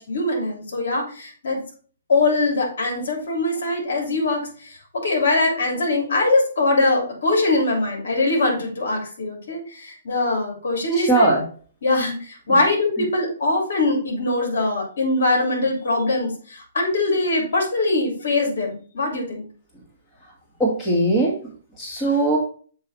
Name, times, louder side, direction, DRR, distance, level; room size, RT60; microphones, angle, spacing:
voice 1, 0.0-1.6 2.1-11.3 11.8-19.4, left 2 dB, 65° left, 1 dB, 2.9 m, -22 dB
voice 2, 10.9-11.4 12.5-12.6 13.0-13.1 20.2-20.3 20.6-21.5 21.8-22.4, right 2 dB, 15° left, -3 dB, 1.7 m, -20 dB
7.5 x 3.2 x 4.0 m, 0.42 s
hypercardioid pair, 145°, 0 cm